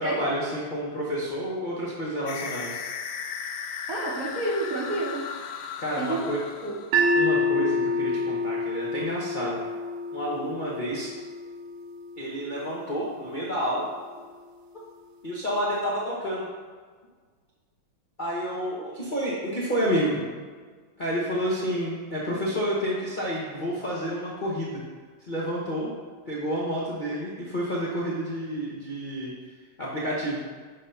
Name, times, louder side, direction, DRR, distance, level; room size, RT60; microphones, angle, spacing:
voice 1, 0.0-2.8 5.8-6.4 7.1-9.6 10.1-11.1 12.2-13.9 15.2-16.5 18.2-20.3 21.0-24.8 25.3-25.9 26.3-29.3 29.8-30.4, equal, 40° left, -7 dB, 0.7 m, -29 dB
sound 1, 2.3-7.2, left 6 dB, 85° left, 0.9 m, -36 dB
voice 2, 3.9-5.2 6.0-6.3 6.6-6.7, right 2 dB, 50° right, -4 dB, 1.1 m, -29 dB
sound 2, 6.9-13.1, left 1 dB, 70° right, 1.2 m, -28 dB
6.5 x 3.6 x 5.5 m, 1.5 s
omnidirectional pair, 2.4 m